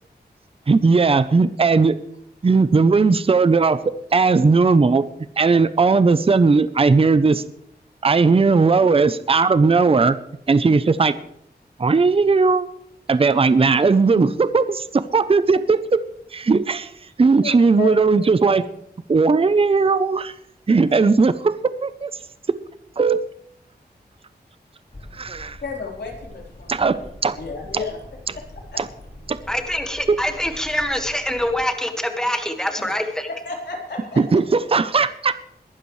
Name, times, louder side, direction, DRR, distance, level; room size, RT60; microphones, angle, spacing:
voice 1, 0.7-2.0 2.4-3.8 4.1-5.0 5.4-7.5 8.0-10.1 10.5-11.1 11.8-12.7 13.1-16.0 16.3-16.9 17.2-18.7 19.1-20.3 20.7-22.1 23.0-23.3 25.1-25.6 26.7-27.4 28.8-28.9 29.3-29.4 30.1-30.2 34.2-35.3, right 4 dB, 35° right, 13 dB, 0.6 m, -17 dB
sound 1, 24.9-31.7, left 1 dB, 35° left, 5.1 m, -43 dB
voice 2, 25.6-26.9 27.2-28.0 28.3-28.8 32.8-32.9 33.4-34.4, left 4 dB, 80° left, -1 dB, 4.0 m, -32 dB
voice 3, 29.5-33.3, left 1 dB, 5° left, 5 dB, 1.7 m, -24 dB
22.0 x 12.5 x 3.2 m, 0.74 s
wide cardioid pair, 105°, 17 cm